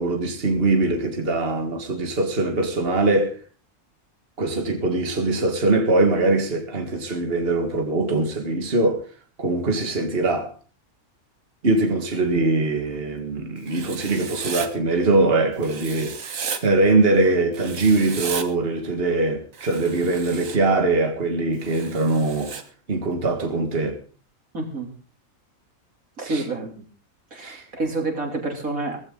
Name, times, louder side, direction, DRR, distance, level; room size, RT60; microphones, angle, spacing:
voice 1, 0.0-3.4 4.4-9.0 9.4-10.5 11.6-22.5 22.9-24.0 26.3-26.4 27.4-27.6, right 2 dB, 45° right, 2.1 m, -22 dB
Writing, 13.7-14.7 15.6-16.6 17.5-18.5 19.5-20.6 21.6-22.6, right 6 dB, 70° right, 1.7 m, -34 dB
voice 2, 24.5-24.9 26.2-26.8 27.3-29.0, right 2 dB, 85° right, 3.8 m, -28 dB
17.0 x 15.0 x 3.9 m
omnidirectional pair, 1.4 m